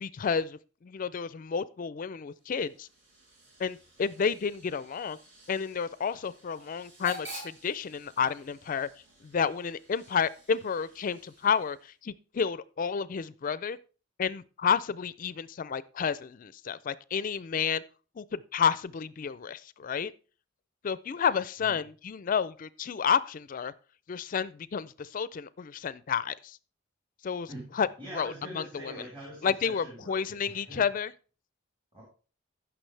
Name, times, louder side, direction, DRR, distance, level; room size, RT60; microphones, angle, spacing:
voice 1, 0.0-2.9 3.6-5.2 5.5-8.9 9.2-13.8 14.2-17.8 18.2-20.1 20.8-23.7 24.1-26.6 27.2-27.5 27.7-27.9 28.1-28.9 29.4-31.1, left 6 dB, 45° left, 0.4 m, -30 dB
Hiss / Train / Alarm, 2.3-12.0, right 1 dB, 65° right, 6.2 m, -50 dB
voice 2, 27.5-30.8 31.9-32.0, right 1 dB, 25° right, 3.9 m, -44 dB
15.5 x 6.1 x 3.3 m
head